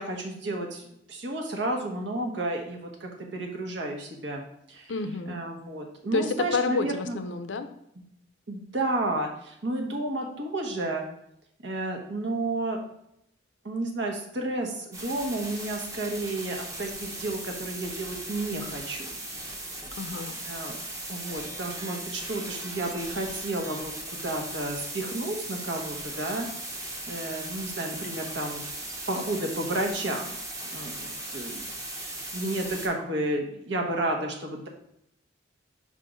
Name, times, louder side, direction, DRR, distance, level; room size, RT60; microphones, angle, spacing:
voice 1, 0.0-4.9 5.3-7.2 8.5-11.1 11.6-12.8 13.6-19.2 20.4-20.8 21.1-28.6 29.1-30.4 30.7-31.6 32.3-34.7, right 2 dB, 70° right, 2 dB, 1.1 m, -32 dB
voice 2, 4.9-5.4 6.1-7.7 19.9-20.4, left 4 dB, 80° left, 9 dB, 0.5 m, -29 dB
sound 1, 14.9-32.9, right 1 dB, 15° right, 0.8 m, -38 dB
5.1 x 3.7 x 5.2 m, 0.76 s
head